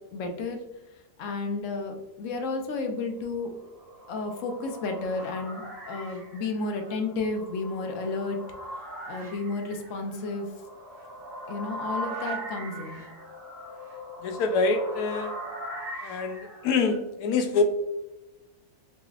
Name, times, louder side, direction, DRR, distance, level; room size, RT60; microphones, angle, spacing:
voice 1, 0.1-0.6 1.2-3.5 4.1-8.4 9.1-10.5 11.5-13.0, left 3 dB, 65° left, 4 dB, 0.9 m, -32 dB
sound 1, 3.6-17.0, equal, 85° right, 1.6 m, -40 dB
voice 2, 14.2-15.3 16.0-17.6, left 4 dB, 90° left, 6 dB, 1.1 m, -25 dB
3.8 x 3.0 x 2.3 m, 1.0 s
omnidirectional pair, 1.6 m